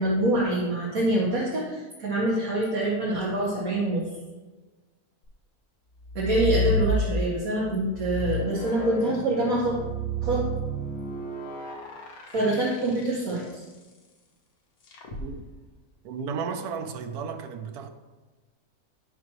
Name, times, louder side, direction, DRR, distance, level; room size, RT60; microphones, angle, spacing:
voice 1, 0.0-4.1 6.2-9.7 10.2-10.4 12.3-13.6, right 2 dB, 70° right, 1.9 m, -25 dB
sound 1, 6.0-7.4 7.9-13.4 14.9-15.2, left 1 dB, 70° left, 1.5 m, -30 dB
voice 2, 16.0-17.9, right 6 dB, 85° right, 1.2 m, -33 dB
9.2 x 5.9 x 3.1 m
omnidirectional pair, 1.6 m